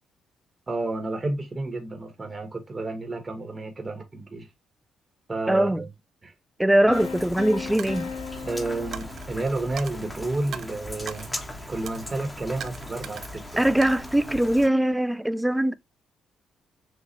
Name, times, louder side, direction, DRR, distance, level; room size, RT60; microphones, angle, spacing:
voice 1, 0.7-4.5 5.3-5.9 6.2-6.3 8.4-11.3 11.7-13.6, right 2 dB, 25° right, 1.2 m, -31 dB
voice 2, 5.5-5.8 6.6-8.1 13.6-15.7, right 1 dB, 5° right, 0.4 m, -22 dB
Piano, 6.9-9.8, left 6 dB, 70° left, 0.7 m, -37 dB
Rain, 6.9-14.7, left 1 dB, 15° left, 1.2 m, -39 dB
Coin (dropping), 7.8-8.1 8.9-9.3 9.8-10.0 10.5-10.7 11.1-11.3 11.9-12.1 12.6-13.4 13.8-14.7, right 8 dB, 65° right, 0.6 m, -39 dB
6.6 x 2.4 x 3.1 m
cardioid pair, 90°, 0 cm